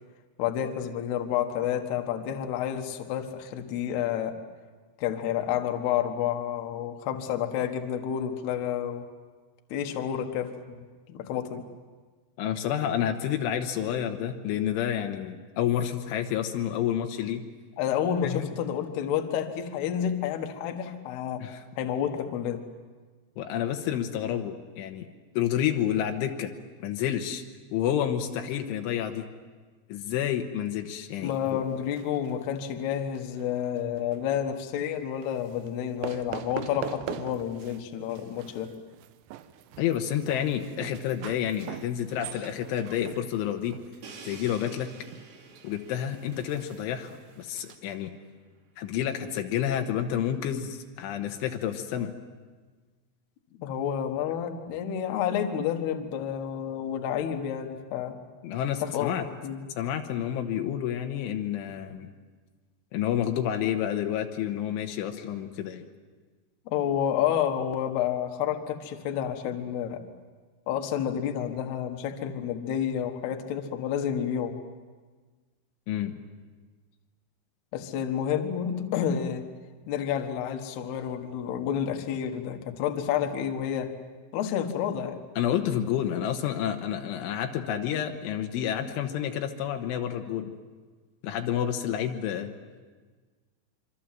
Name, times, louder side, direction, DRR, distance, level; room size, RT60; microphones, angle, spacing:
voice 1, 0.4-4.4 5.0-9.0 9.7-11.6 17.8-21.5 21.8-22.6 31.2-38.7 53.6-58.1 58.8-59.2 59.4-59.6 66.7-70.0 70.7-74.6 77.7-79.4 79.9-83.9 84.3-85.2, left 9 dB, 65° left, 5 dB, 3.2 m, -30 dB
voice 2, 12.4-17.4 18.2-18.5 21.4-21.6 23.4-25.1 25.4-26.5 26.8-27.4 27.7-29.3 29.9-31.6 39.8-43.8 44.3-44.9 45.6-48.1 48.8-52.1 58.4-59.3 59.8-62.1 62.9-65.8 75.9-76.2 85.4-90.5 91.2-92.5, left 10 dB, 85° left, 4 dB, 3.6 m, -29 dB
sound 1, 31.2-33.4 33.8-34.2 35.2-35.7 36.0-37.8 38.1-47.8, right 10 dB, 75° right, 3.0 m, -43 dB
Crash cymbal, 44.0-47.8, right 4 dB, 60° right, 4.7 m, -49 dB
26.0 x 25.0 x 7.6 m, 1.4 s
omnidirectional pair, 5.6 m